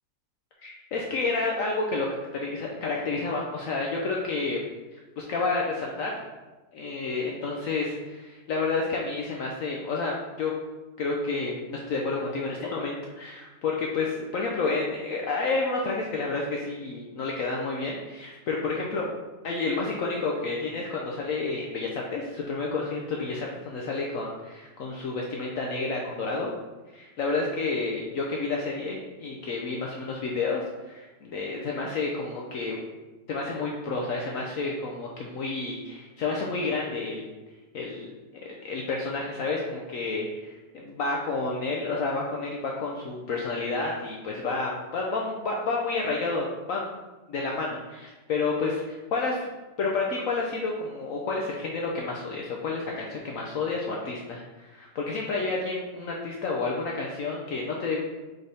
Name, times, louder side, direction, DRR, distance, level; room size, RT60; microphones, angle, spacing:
voice 1, 0.6-2.1 2.3-4.6 4.9-6.2 6.7-10.5 11.0-19.1 19.4-26.5 26.9-32.8 33.3-37.3 37.7-38.1 38.6-47.0 47.3-49.5 49.8-58.0, left 3 dB, 85° left, -1 dB, 0.7 m, -30 dB
3.8 x 3.4 x 4.0 m, 1.1 s
omnidirectional pair, 2.0 m